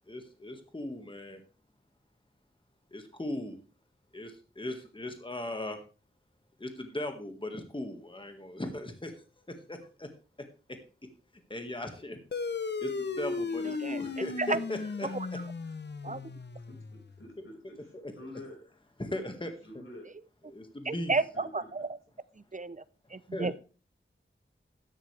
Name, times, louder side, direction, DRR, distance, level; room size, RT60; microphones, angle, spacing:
voice 1, 0.1-1.4 2.9-3.6 4.1-5.8 6.6-9.3 9.7-10.1 11.5-12.2 12.8-15.1 17.9-18.4 19.0-19.5 20.5-21.1 23.3-23.5, left 1 dB, 25° left, 5 dB, 1.7 m, -38 dB
sound 1, 12.3-17.2, left 4 dB, 55° left, 0.8 m, -36 dB
voice 2, 13.6-14.6 15.0-15.3 16.0-16.2 20.8-21.9 22.5-22.8 23.1-23.5, right 3 dB, 40° right, 16 dB, 0.6 m, -32 dB
voice 3, 16.7-18.6 19.6-20.1 21.3-21.5, left 1 dB, 85° left, 0 dB, 5.4 m, -48 dB
12.5 x 10.5 x 3.3 m, 0.36 s
wide cardioid pair, 60°, 21 cm